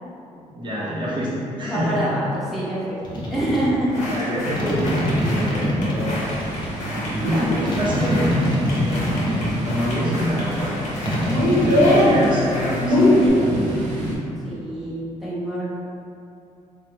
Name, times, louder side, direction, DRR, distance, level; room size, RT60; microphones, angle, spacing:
voice 1, 0.4-1.3 1.6-2.1 4.1-6.2 7.2-10.8 11.6-13.5, equal, 35° right, -8 dB, 1.0 m, -26 dB
voice 2, 1.6-3.0 3.3-4.0 7.3-7.5 14.4-15.6, right 1 dB, ahead, -10 dB, 1.0 m, -26 dB
sound 1, 3.0-3.6 4.6-6.7 7.6-9.9 11.0-12.0, equal, 35° left, 0.9 m, -25 dB
sound 2, 3.9-13.3, left 1 dB, 70° left, 1.1 m, -23 dB
Thunder, 6.2-14.2, right 1 dB, 75° right, 0.7 m, -31 dB
3.4 x 2.3 x 3.0 m, 2.7 s
cardioid pair, 85°, 13 cm